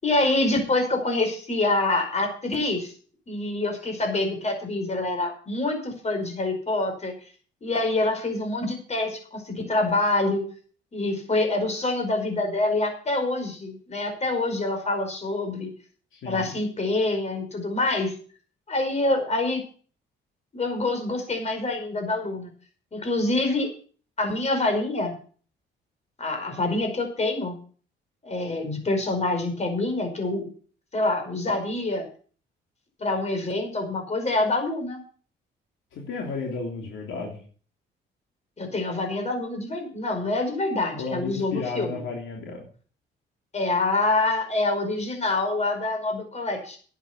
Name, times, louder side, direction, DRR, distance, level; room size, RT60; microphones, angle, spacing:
voice 1, 0.0-2.9 3.3-7.1 7.6-10.4 10.9-15.7 16.2-18.1 18.7-19.6 20.5-22.5 22.9-23.7 24.2-25.2 26.2-27.5 28.2-30.5 30.9-32.1 33.0-35.0 38.6-42.0 43.5-46.8, left 2 dB, 35° left, 4 dB, 5.1 m, -26 dB
voice 2, 16.1-16.6 35.9-37.4 41.0-42.6, left 4 dB, 80° left, 0 dB, 3.2 m, -33 dB
11.0 x 8.7 x 6.9 m, 0.43 s
cardioid pair, 90°, 20 cm